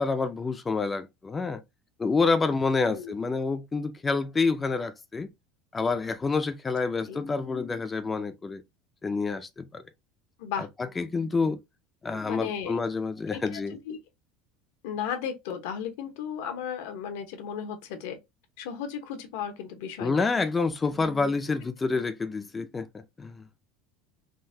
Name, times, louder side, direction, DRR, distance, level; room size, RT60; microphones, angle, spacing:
voice 1, 0.0-1.6 2.0-5.3 5.7-8.6 9.0-9.8 10.8-11.6 12.0-13.8 20.0-22.9 23.2-23.4, left 4 dB, 15° left, 0.3 m, -28 dB
voice 2, 2.8-3.1 7.1-7.2 10.4-10.7 12.3-12.8 13.3-13.6 13.9-14.0 14.8-18.2 18.6-20.3, left 8 dB, 80° left, 0.8 m, -35 dB
3.7 x 2.1 x 2.6 m
supercardioid pair, 145°, 0 cm